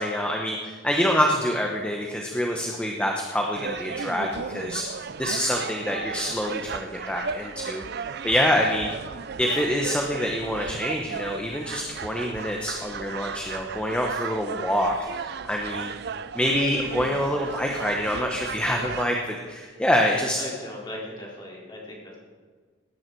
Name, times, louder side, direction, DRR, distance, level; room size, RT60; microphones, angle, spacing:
voice 1, 0.0-4.8 5.2-7.8 8.2-8.9 9.4-15.9 16.3-20.4, equal, 5° left, 1 dB, 0.9 m, -26 dB
sound 1, 3.6-19.1, right 6 dB, 55° right, 0.5 m, -35 dB
voice 2, 20.4-22.2, left 1 dB, 25° left, -4 dB, 3.9 m, -38 dB
18.0 x 9.6 x 4.7 m, 1.5 s
head